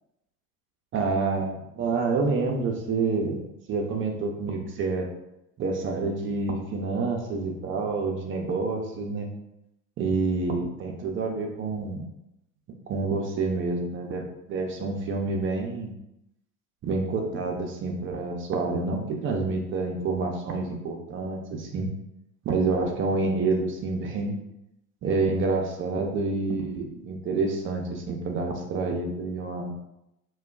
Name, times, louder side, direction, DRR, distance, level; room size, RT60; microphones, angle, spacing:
voice 1, 0.9-5.1 5.6-9.3 10.0-12.1 12.9-15.9 16.8-21.9 22.4-24.4 25.0-29.7, right 3 dB, 30° right, 2 dB, 0.5 m, -28 dB
2.2 x 2.2 x 3.5 m, 0.86 s
hypercardioid pair, 75°, 46 cm